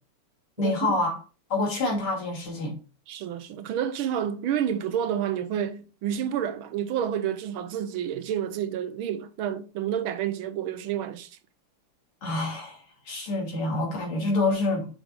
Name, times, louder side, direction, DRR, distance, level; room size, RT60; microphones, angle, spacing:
voice 1, 0.6-1.2 1.5-2.8 12.2-14.9, left 2 dB, 75° left, 3.5 m, -27 dB
voice 2, 3.1-11.4, right 9 dB, 75° right, 1.5 m, -29 dB
6.4 x 6.3 x 3.7 m
omnidirectional pair, 2.4 m